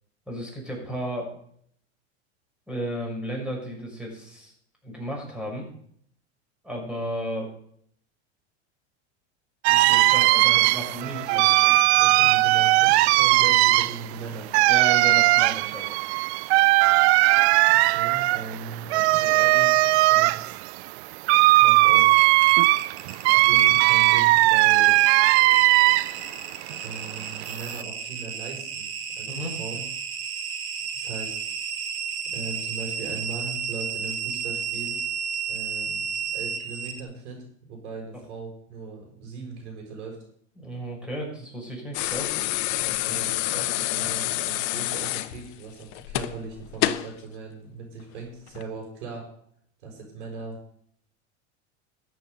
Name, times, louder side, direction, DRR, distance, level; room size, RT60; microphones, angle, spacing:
voice 1, 0.3-1.3 2.7-4.5 4.8-5.7 6.6-7.5 9.7-11.5 14.7-16.0 29.3-29.6 40.6-42.3, equal, 5° right, -1 dB, 6.0 m, -34 dB
sound 1, 9.6-26.3 26.6-27.8, right 20 dB, 70° right, 0.5 m, -19 dB
voice 2, 10.3-14.5 17.7-20.6 21.6-22.2 23.3-25.0 26.8-28.9 29.1-29.8 30.9-31.4 32.3-35.0 35.5-36.1 36.3-40.2 42.8-49.3 49.8-50.6, right 4 dB, 85° right, -1 dB, 5.9 m, -38 dB
sound 2, 22.1-37.0, right 7 dB, 50° right, 2.2 m, -33 dB
sound 3, 41.9-47.1 48.5-48.6, left 16 dB, 65° left, 0.9 m, -28 dB
13.5 x 8.0 x 6.8 m, 0.66 s
supercardioid pair, 115°, 34 cm